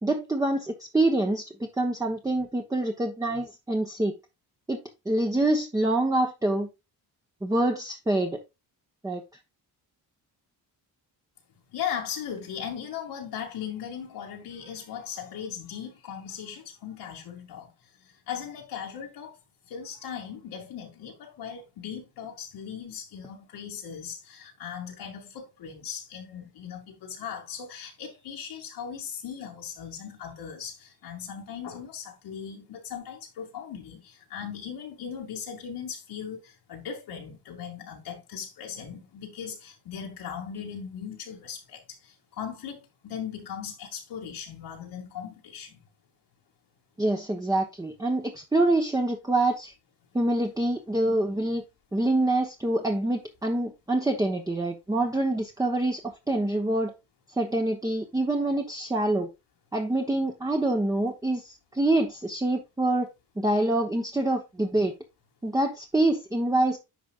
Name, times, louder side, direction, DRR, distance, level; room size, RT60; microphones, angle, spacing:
voice 1, 0.0-4.1 4.7-6.7 7.4-8.4 9.0-9.2 47.0-49.7 50.1-51.6 51.9-56.9 57.4-59.3 59.7-63.1 63.4-64.9 65.4-66.8, right 2 dB, 10° right, 0.9 m, -26 dB
voice 2, 11.7-17.7 18.3-19.4 19.7-45.8, left 8 dB, 85° left, 2.1 m, -38 dB
10.0 x 5.1 x 2.4 m
cardioid pair, 110°, 39 cm